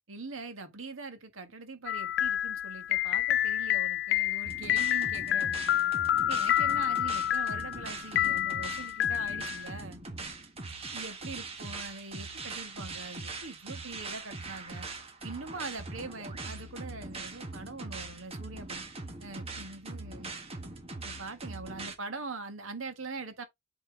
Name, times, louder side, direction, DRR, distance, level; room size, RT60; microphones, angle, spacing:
voice 1, 0.1-5.9 6.3-10.0 10.9-14.9 15.2-18.8 19.2-20.3 21.0-23.4, right 3 dB, 90° right, 1.8 m, -43 dB
sound 1, 1.9-9.8, left 12 dB, 55° left, 0.3 m, -29 dB
sound 2, 4.4-21.9, right 3 dB, 30° right, 1.4 m, -41 dB
8.3 x 4.4 x 3.3 m
head